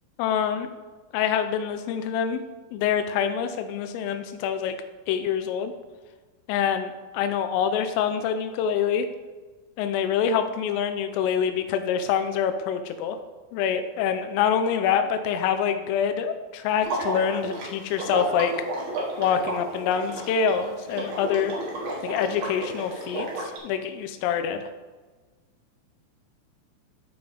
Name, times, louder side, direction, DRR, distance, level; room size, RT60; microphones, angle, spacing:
voice 1, 0.2-0.7 1.1-2.4 2.7-4.8 5.1-5.7 6.5-9.1 9.8-13.2 13.5-18.5 19.2-21.5 22.0-24.6, left 7 dB, 80° left, 8 dB, 3.2 m, -25 dB
Water / Liquid, 16.8-23.6, right 2 dB, 60° right, 2.9 m, -32 dB
14.0 x 5.2 x 3.5 m, 1.3 s
omnidirectional pair, 5.9 m